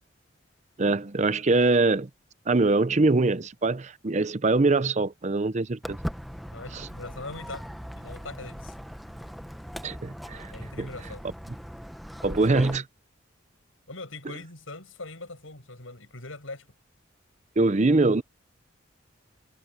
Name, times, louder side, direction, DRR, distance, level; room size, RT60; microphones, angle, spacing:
voice 1, 0.8-2.1 2.5-6.0 9.8-10.5 10.8-10.9 12.2-12.8 17.6-18.2, right 3 dB, 35° right, 0.6 m, -23 dB
Walk footsteps, 5.8-12.8, equal, ahead, 0.8 m, -39 dB
voice 2, 6.5-7.7 7.9-8.7 10.5-11.2 13.9-16.7, left 2 dB, 85° left, 7.3 m, -41 dB
head